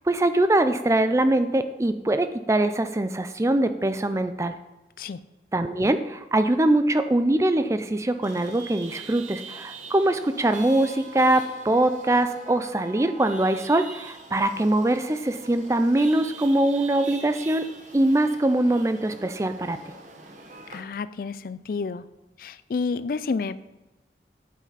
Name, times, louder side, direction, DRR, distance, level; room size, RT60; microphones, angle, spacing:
voice 1, 0.0-4.5 5.5-19.8, right 1 dB, 15° right, 10 dB, 0.4 m, -23 dB
Chatter / Vehicle horn car horn honking / Traffic noise roadway noise, 8.2-20.8, right 3 dB, 45° right, 1.0 m, -43 dB
voice 2, 20.7-22.0 22.4-23.7, left 4 dB, 55° left, 15 dB, 0.3 m, -30 dB
8.7 x 7.6 x 4.0 m, 1.1 s
head